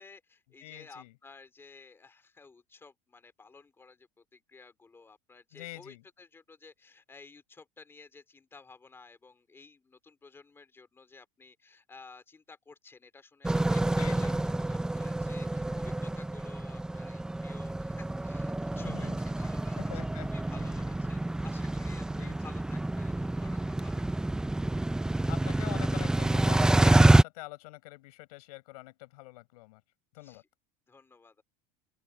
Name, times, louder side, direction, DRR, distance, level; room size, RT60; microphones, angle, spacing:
voice 1, 0.0-19.8 20.3-24.2 30.2-30.4 30.9-31.4, left 4 dB, 10° left, 2.8 m, -53 dB
voice 2, 0.6-1.2 5.5-6.0 13.9-14.4 18.8-19.5 19.8-20.8 22.1-22.4 25.3-29.8 30.1-30.4, left 21 dB, 80° left, 6.9 m, -45 dB
sound 1, 13.4-27.2, right 2 dB, 5° right, 0.5 m, -28 dB
open air
supercardioid pair, 150°, 19 cm